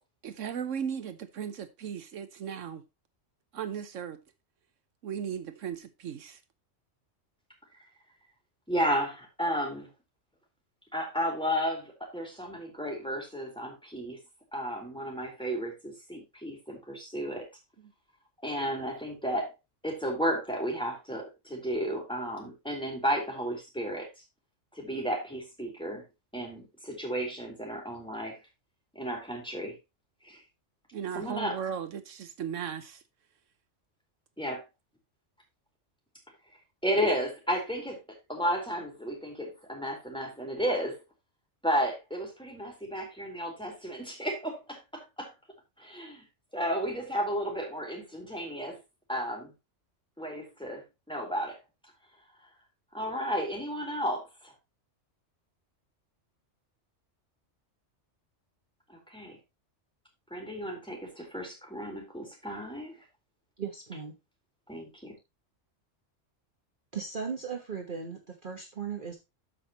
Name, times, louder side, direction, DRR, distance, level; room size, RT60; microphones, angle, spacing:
voice 1, 0.2-2.8 3.5-4.2 5.0-6.4 30.9-33.0, right 8 dB, 80° right, 1.2 m, -36 dB
voice 2, 8.7-9.9 10.9-14.2 14.5-17.5 18.4-19.5 19.8-24.1 24.7-26.0 26.3-28.4 28.9-29.8 30.2-30.4 31.1-31.6 34.4-34.6 36.8-38.0 38.3-41.0 41.6-45.3 45.8-46.2 46.5-48.8 49.1-49.5 50.2-51.6 52.9-54.5 58.9-59.4 60.3-63.0 64.7-65.1, equal, 5° left, 3.8 m, -33 dB
voice 3, 63.6-64.1 66.9-69.2, right 6 dB, 45° right, 1.5 m, -37 dB
13.5 x 5.8 x 3.0 m
omnidirectional pair, 1.3 m